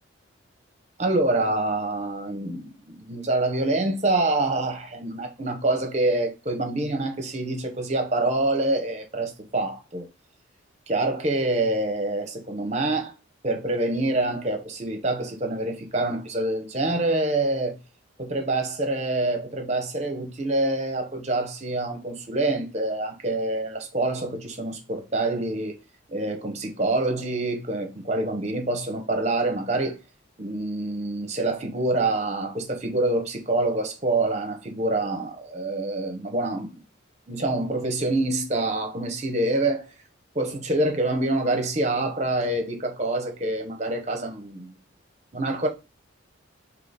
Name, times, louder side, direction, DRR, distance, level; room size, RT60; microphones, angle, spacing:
voice 1, 1.0-10.1 10.9-13.1 13.4-17.7 18.2-25.8 26.1-30.0 30.4-36.8 37.3-39.9 40.3-44.7 45.3-45.7, right 2 dB, 35° right, 0.8 m, -26 dB
3.8 x 2.9 x 3.9 m
head